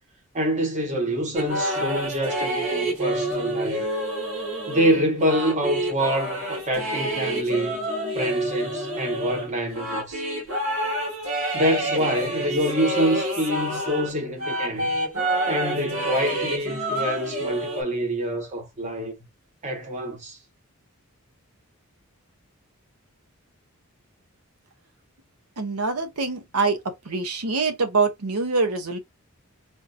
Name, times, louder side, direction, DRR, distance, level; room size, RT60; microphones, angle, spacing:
voice 1, 0.3-3.8 4.7-7.7 8.1-10.2 11.5-14.9 15.5-19.2 19.6-20.4, equal, 30° right, 1.2 m, -26 dB
sound 1, 1.4-14.1 14.4-17.8, right 1 dB, 60° right, 1.9 m, -28 dB
voice 2, 25.6-26.8 27.1-29.0, right 4 dB, 80° right, 0.8 m, -24 dB
3.7 x 2.7 x 2.5 m
head